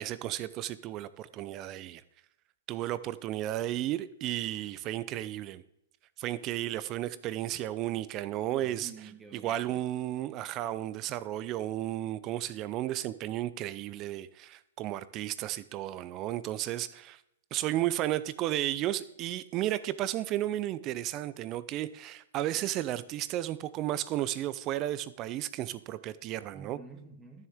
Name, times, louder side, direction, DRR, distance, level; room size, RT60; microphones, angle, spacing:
voice 1, 0.0-2.0 2.7-5.6 6.2-8.9 9.3-17.2 17.5-26.8, right 13 dB, 30° right, 0.5 m, -33 dB
voice 2, 8.5-9.9 26.5-27.5, right 4 dB, 10° right, 1.5 m, -49 dB
12.5 x 7.2 x 3.6 m
hypercardioid pair, 125°, 0 cm